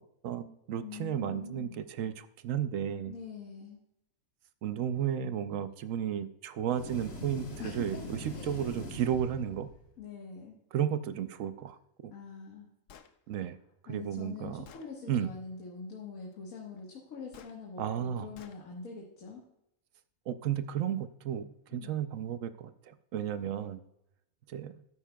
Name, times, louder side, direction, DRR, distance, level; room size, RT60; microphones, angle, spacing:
voice 1, 0.2-3.1 4.6-9.7 10.7-11.8 12.0-12.1 13.3-13.6 13.8-14.7 15.1-15.3 17.8-18.3 20.3-23.9 24.5-24.7, right 9 dB, 75° right, 12 dB, 1.0 m, -33 dB
voice 2, 0.8-1.8 3.1-3.8 7.6-8.0 8.3-8.7 10.0-10.6 12.1-12.7 13.9-19.4 21.7-21.9, left 5 dB, 90° left, -2 dB, 1.8 m, -44 dB
sound 1, 6.7-9.9, left 1 dB, 50° left, 1.4 m, -42 dB
Gunshot gunfire, 12.9-13.1 14.0-14.1 14.7-14.9 17.3-17.6 18.4-18.6, left 8 dB, 70° left, 1.1 m, -53 dB
12.5 x 9.5 x 2.3 m, 0.82 s
omnidirectional pair, 1.4 m